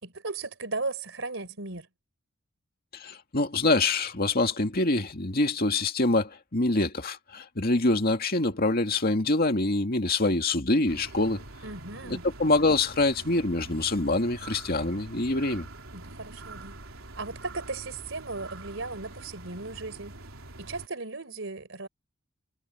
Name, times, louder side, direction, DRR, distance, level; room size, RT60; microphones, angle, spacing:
voice 1, 0.0-1.9 11.6-12.2 15.9-20.1 20.6-21.9, right 3 dB, 65° right, 4.1 m, -36 dB
voice 2, 2.9-11.4 12.0-15.7, left 2 dB, 45° left, 2.2 m, -25 dB
sound 1, 10.9-20.9, right 2 dB, 85° right, 3.5 m, -45 dB
head